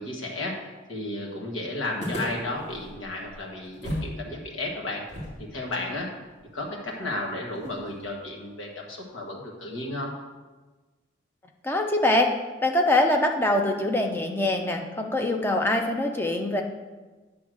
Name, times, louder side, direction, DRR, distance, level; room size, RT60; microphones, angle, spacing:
voice 1, 0.0-5.0 5.4-6.1 6.5-10.1, left 2 dB, 85° left, -1 dB, 1.6 m, -33 dB
sound 1, 2.0-4.2 4.4-4.5 5.1-8.2, equal, 35° left, 2.5 m, -38 dB
voice 2, 11.6-12.3 12.6-16.6, left 1 dB, 10° left, 2 dB, 0.6 m, -23 dB
9.0 x 3.6 x 6.2 m, 1.3 s
head